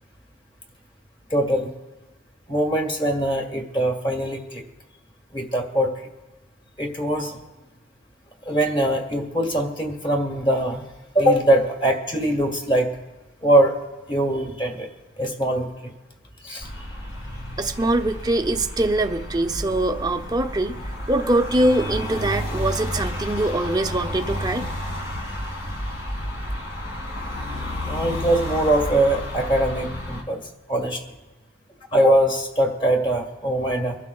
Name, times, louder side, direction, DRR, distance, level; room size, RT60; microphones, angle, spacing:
voice 1, 1.3-1.7 2.5-4.6 5.3-5.9 6.8-7.4 8.5-10.9 11.1-12.9 13.4-13.7 14.1-14.9 15.2-15.7 16.4-16.7 27.9-30.4 30.7-31.0 31.9-34.0, right 1 dB, 25° left, 3 dB, 1.4 m, -22 dB
sound 1, 16.6-30.2, left 1 dB, 65° left, 2.0 m, -31 dB
voice 2, 17.6-24.7, right 1 dB, 20° right, 6 dB, 0.6 m, -23 dB
25.0 x 12.0 x 2.4 m, 1.1 s
head